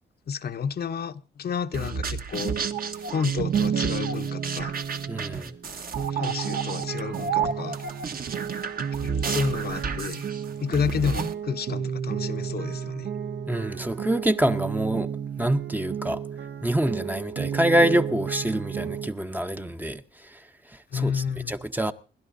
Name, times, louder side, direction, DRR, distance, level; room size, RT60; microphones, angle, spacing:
voice 1, 0.3-2.6 3.1-4.7 6.1-7.8 9.0-10.2 10.6-13.1 20.9-21.5, left 6 dB, 55° left, 0.7 m, -30 dB
sound 1, 1.7-11.3, right 6 dB, 50° right, 1.0 m, -32 dB
sound 2, 2.3-19.1, right 8 dB, 75° right, 0.8 m, -32 dB
Yell, 4.2-5.6 6.3-9.6, right 6 dB, 90° right, 6.3 m, -53 dB
voice 2, 5.1-5.5 13.5-15.1 15.4-16.2 16.6-20.4 20.9-21.9, right 1 dB, 10° right, 0.6 m, -26 dB
27.5 x 12.0 x 2.6 m
wide cardioid pair, 145°, 19 cm